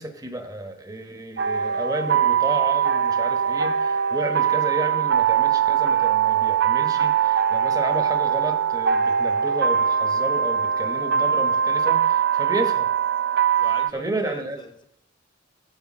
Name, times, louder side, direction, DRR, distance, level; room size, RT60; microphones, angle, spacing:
voice 1, 0.0-12.9 13.9-14.6, right 2 dB, 20° right, 6 dB, 1.1 m, -31 dB
sound 1, 1.4-13.9, right 8 dB, 60° right, 0.5 m, -22 dB
voice 2, 13.6-14.8, left 2 dB, 25° left, 7 dB, 1.0 m, -40 dB
9.7 x 8.1 x 6.3 m, 0.76 s
head